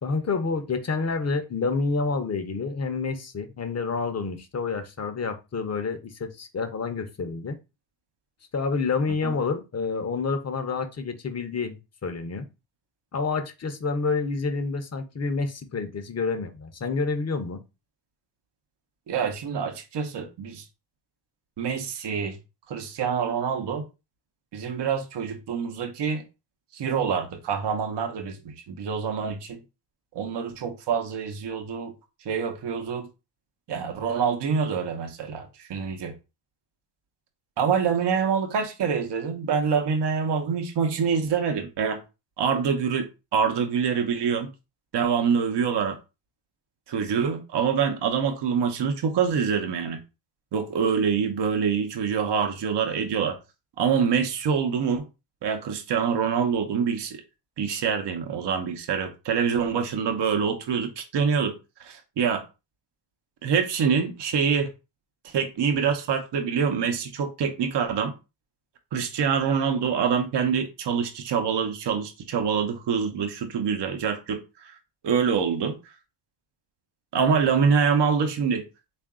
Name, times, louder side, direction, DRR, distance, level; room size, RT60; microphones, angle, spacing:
voice 1, 0.0-7.6 8.5-12.4 13.1-17.6, left 4 dB, 35° left, 0.7 m, -28 dB
voice 2, 19.1-20.6 21.6-22.4 22.7-23.8 24.5-26.2 26.7-29.6 30.1-31.9 32.2-33.1 33.7-36.1 37.6-42.0 42.4-44.5 44.9-46.0 46.9-50.0 50.5-53.4 53.8-55.1 55.4-57.2 57.6-61.5 61.8-62.4 63.4-64.7 65.2-68.1 68.9-74.7 75.0-75.7 77.1-78.6, right 6 dB, 70° right, 0.8 m, -25 dB
3.6 x 2.5 x 3.6 m
cardioid pair, 85°, 43 cm